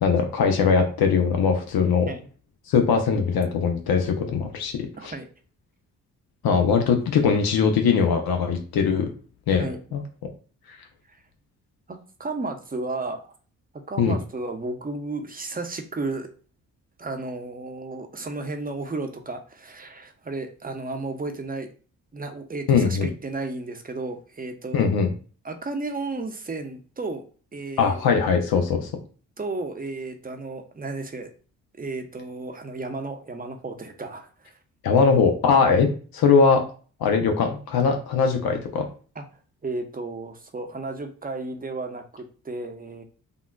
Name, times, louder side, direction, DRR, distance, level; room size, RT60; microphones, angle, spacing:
voice 1, 0.0-2.1 2.7-4.8 5.0-5.1 6.4-9.1 9.5-9.6 9.9-10.0 14.0-14.2 22.7-23.1 24.7-25.1 27.8-28.9 34.8-35.9 36.1-36.6 37.0-38.9, left 5 dB, 65° left, 4 dB, 0.7 m, -20 dB
voice 2, 5.0-5.3 9.6-9.8 11.1-11.2 11.9-13.3 13.9-16.3 17.0-21.7 22.1-24.9 25.4-27.2 27.5-28.0 29.4-31.3 31.8-34.6 39.1-39.2 39.6-43.0, right 3 dB, 20° right, 5 dB, 0.7 m, -33 dB
3.6 x 2.3 x 2.2 m, 0.39 s
hypercardioid pair, 45°, 39 cm